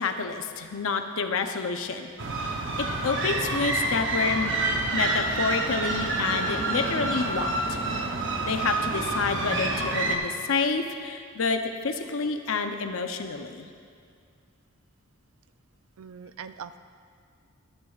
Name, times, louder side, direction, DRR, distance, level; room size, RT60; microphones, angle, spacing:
voice 1, 0.0-2.1 2.4-2.5 2.8-4.5 4.9-7.8 8.4-13.7, left 4 dB, 75° left, 6 dB, 0.7 m, -29 dB
sound 1, 2.2-10.2, right 2 dB, 60° right, 0.9 m, -28 dB
voice 2, 16.0-16.8, right 7 dB, 85° right, 12 dB, 0.4 m, -41 dB
13.5 x 10.5 x 2.4 m, 2.2 s
head